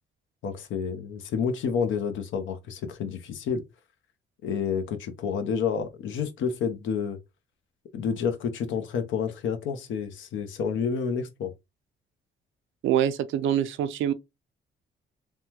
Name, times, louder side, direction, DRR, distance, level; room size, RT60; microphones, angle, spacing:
voice 1, 0.4-3.6 4.4-7.2 7.9-11.5, left 6 dB, 80° left, 0.7 m, -29 dB
voice 2, 12.8-14.1, right 10 dB, 75° right, 0.5 m, -25 dB
3.4 x 2.2 x 2.8 m
cardioid pair, 90°, 20 cm